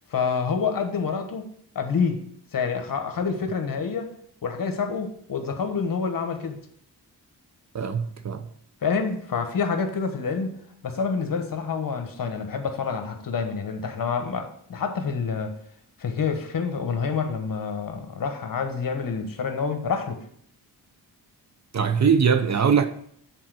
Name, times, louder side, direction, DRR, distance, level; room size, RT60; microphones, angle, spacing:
voice 1, 0.1-1.5 1.7-2.2 2.5-4.1 4.4-6.6 8.8-15.6 16.0-20.2, left 5 dB, 55° left, 1.3 m, -27 dB
voice 2, 7.7-8.5 21.7-22.9, right 6 dB, 45° right, 0.7 m, -21 dB
7.6 x 4.2 x 6.1 m
cardioid pair, 100°, 40 cm